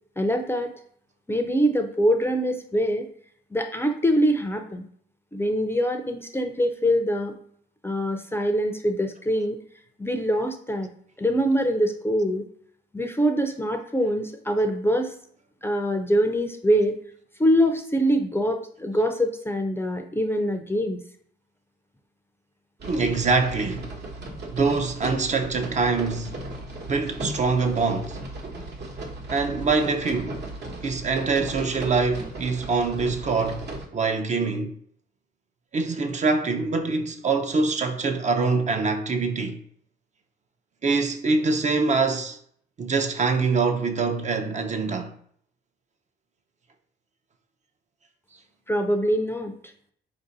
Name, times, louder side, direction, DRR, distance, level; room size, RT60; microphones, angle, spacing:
voice 1, 0.2-0.7 1.3-3.1 3.5-4.9 5.3-7.4 7.8-9.6 10.0-10.9 11.2-12.4 12.9-15.1 15.6-17.0 17.4-21.0 48.7-49.6, equal, 10° left, 0.5 m, -24 dB
voice 2, 22.8-24.0 24.5-26.3 26.9-28.2 29.3-30.4 30.8-33.7 33.9-34.8 35.7-39.6 40.8-42.4 42.8-45.1, right 4 dB, 35° right, 0.6 m, -24 dB
sound 1, 22.8-33.9, right 2 dB, 55° right, 1.1 m, -36 dB
4.2 x 2.6 x 4.0 m
cardioid pair, 90°, 20 cm